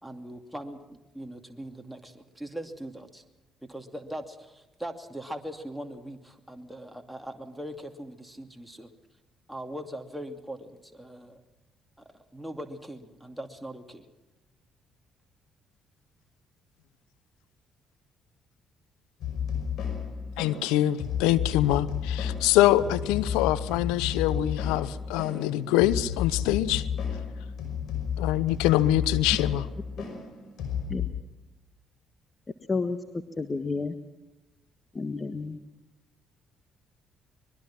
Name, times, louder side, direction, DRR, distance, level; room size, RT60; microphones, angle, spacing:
voice 1, 0.0-3.2 3.7-8.9 9.5-11.4 12.0-14.0, right 1 dB, 5° right, 4 dB, 2.6 m, -40 dB
sound 1, 19.2-31.1, left 8 dB, 65° left, 5.6 m, -32 dB
voice 2, 20.4-26.8 28.2-29.7, left 14 dB, 80° left, 16 dB, 0.8 m, -24 dB
voice 3, 33.4-33.9 34.9-35.6, left 4 dB, 30° left, 8 dB, 1.5 m, -30 dB
24.5 x 21.5 x 6.0 m, 1.1 s
hypercardioid pair, 50°, 0 cm